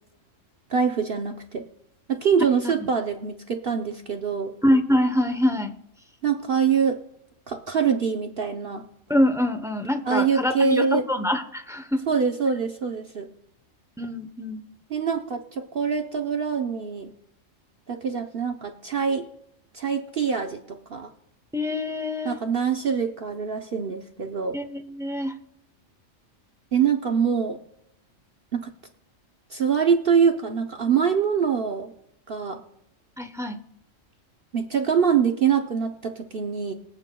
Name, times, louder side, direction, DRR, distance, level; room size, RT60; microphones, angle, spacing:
voice 1, 0.7-1.6 2.1-4.5 6.2-7.0 7.5-8.8 10.1-11.1 12.1-13.3 14.9-17.1 17.9-19.3 19.7-21.1 22.2-24.6 26.7-27.6 28.5-28.7 29.5-31.9 32.3-32.6 34.5-36.7, right 6 dB, 50° right, 4 dB, 0.9 m, -24 dB
voice 2, 4.6-5.7 9.1-12.0 14.0-14.6 21.5-22.4 24.5-25.3 33.2-33.6, left 1 dB, 5° right, 8 dB, 0.5 m, -24 dB
24.0 x 8.3 x 2.2 m, 0.79 s
omnidirectional pair, 1.3 m